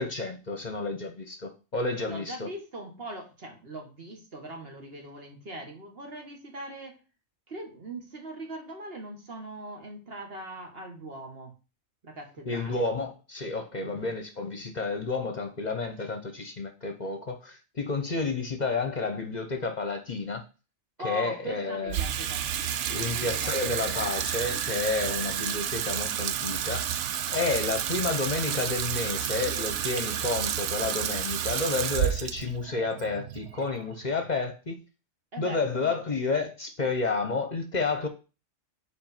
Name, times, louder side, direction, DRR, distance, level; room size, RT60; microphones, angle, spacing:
voice 1, 0.0-2.5 12.5-20.4 21.0-22.0 22.9-27.0 27.3-34.8 35.4-38.1, left 3 dB, 40° left, 0.9 m, -30 dB
voice 2, 2.1-7.0 7.5-11.5 12.0-12.9 13.8-14.1 21.0-23.8 35.3-36.0, right 1 dB, 55° right, 1.8 m, -41 dB
Water tap faucet / Sink (filling or washing), 21.9-34.3, right 10 dB, 85° right, 0.9 m, -31 dB
5.0 x 4.2 x 5.6 m
omnidirectional pair, 1.2 m